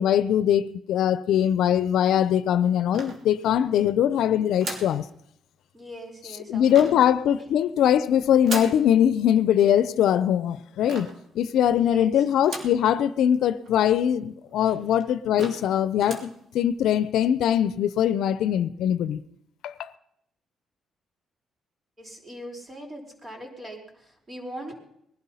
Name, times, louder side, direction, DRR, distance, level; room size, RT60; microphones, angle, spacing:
voice 1, 0.0-5.1 6.5-11.1 11.3-19.2 19.6-19.9, left 10 dB, 80° left, 0.7 m, -22 dB
sound 1, 2.9-3.7 4.6-5.0 6.7-7.1 8.4-8.9 10.9-11.3 12.4-12.9 13.3-13.4 13.6-13.7 14.5-14.6 15.0-15.1 15.4-15.7 16.0-16.4, right 3 dB, 55° right, 3.1 m, -36 dB
voice 2, 5.7-7.0 7.4-7.5 11.8-12.1 14.7-14.9 22.0-24.7, equal, 25° right, 4.8 m, -41 dB
20.0 x 11.5 x 5.7 m
cardioid pair, 90°, 0 cm